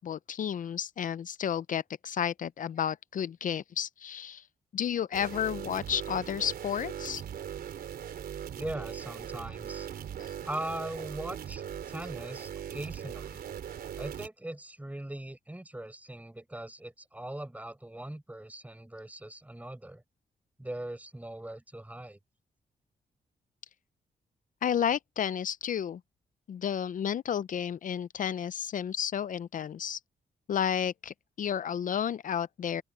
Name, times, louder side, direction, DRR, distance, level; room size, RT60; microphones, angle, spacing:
voice 1, 0.0-4.4 4.7-7.2 24.6-26.0 26.5-30.0 30.5-32.8, left 8 dB, 60° left, 0.5 m, -32 dB
sound 1, 5.1-14.3, right 9 dB, 80° right, 4.1 m, -40 dB
voice 2, 8.5-9.9 10.4-11.6 11.9-13.4 13.9-20.0 20.6-22.2, right 1 dB, 10° right, 6.3 m, -40 dB
open air
cardioid pair, 80°, 16 cm